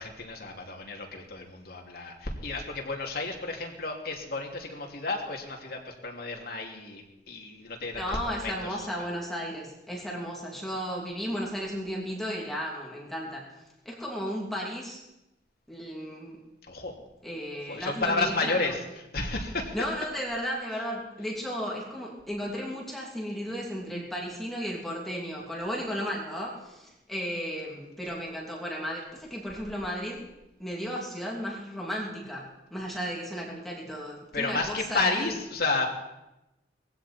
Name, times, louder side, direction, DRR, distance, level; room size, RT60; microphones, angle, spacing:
voice 1, 0.0-8.8 16.7-17.0 17.7-18.8 19.1-19.7 34.3-35.9, left 3 dB, 55° left, 1 dB, 2.8 m, -31 dB
voice 2, 7.9-13.5 13.8-15.0 15.7-16.4 17.2-18.7 19.7-30.3 30.6-35.3, equal, ahead, -3 dB, 2.9 m, -34 dB
20.0 x 15.5 x 4.4 m, 0.95 s
head